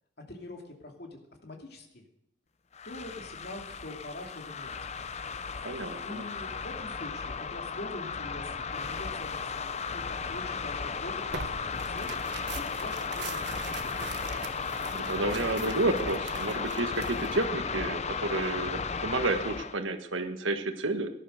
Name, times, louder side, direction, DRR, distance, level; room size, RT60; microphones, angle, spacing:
voice 1, 0.3-2.0 2.8-4.7 6.0-12.2 12.5-13.4 13.7-14.1, left 1 dB, 55° left, 2 dB, 2.6 m, -44 dB
sound 1, 2.7-19.8, left 5 dB, 35° left, 0.6 m, -35 dB
voice 2, 5.6-6.3 14.9-21.1, right 2 dB, 85° right, 7 dB, 1.6 m, -31 dB
Tearing, 11.3-17.4, right 5 dB, 60° right, 1.1 m, -43 dB
17.5 x 11.0 x 6.5 m, 0.82 s
head